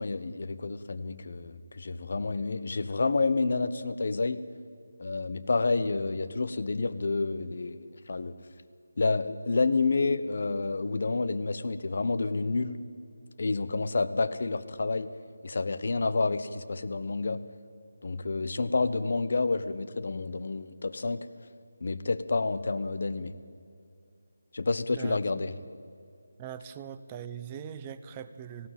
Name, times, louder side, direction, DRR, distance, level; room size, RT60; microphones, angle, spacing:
voice 1, 0.0-4.4 5.0-8.3 9.0-12.8 13.4-15.1 15.4-17.4 18.0-21.3 21.8-23.3 24.5-25.5, left 3 dB, 55° left, 12 dB, 1.1 m, -29 dB
voice 2, 24.9-25.2 26.4-28.7, right 9 dB, 20° right, 10 dB, 0.7 m, -41 dB
18.5 x 16.0 x 9.0 m, 2.4 s
figure-of-eight pair, 165°, 0 cm